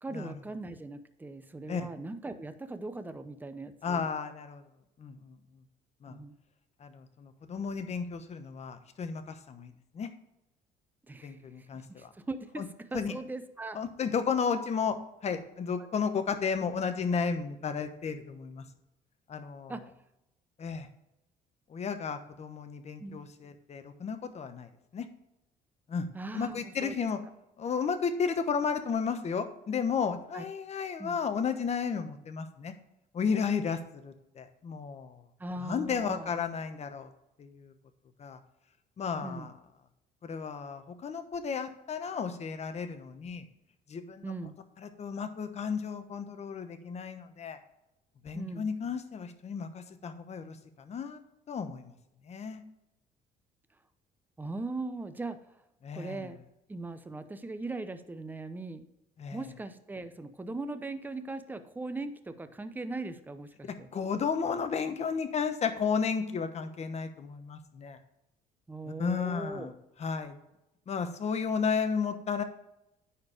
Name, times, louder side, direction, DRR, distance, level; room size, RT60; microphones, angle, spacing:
voice 1, 0.0-4.1 6.1-6.4 11.1-13.8 19.7-19.9 23.0-23.2 26.1-27.0 30.3-30.5 31.0-31.2 35.4-36.3 39.2-39.5 44.2-44.6 48.3-48.7 54.4-55.6 55.9-56.4 56.7-58.9 59.3-63.9 68.7-69.7, right 2 dB, 10° right, 10 dB, 0.7 m, -39 dB
voice 2, 3.8-4.6 5.0-5.4 6.0-6.2 6.8-10.1 11.2-12.1 12.6-12.7 12.9-13.1 13.7-15.0 15.2-18.6 19.3-19.8 20.6-20.9 21.7-25.1 25.9-26.1 26.3-27.2 27.6-32.7 33.1-35.2 35.6-37.1 37.4-37.7 38.2-38.4 39.0-39.5 40.2-43.4 43.9-44.3 44.8-47.6 48.2-51.2 51.5-52.0 52.2-52.6 55.8-56.3 59.2-59.4 63.7-68.0 69.0-69.7 70.0-70.4 70.9-72.4, left 6 dB, 40° left, 8 dB, 1.0 m, -33 dB
9.6 x 4.4 x 4.9 m, 0.89 s
cardioid pair, 110°, 17 cm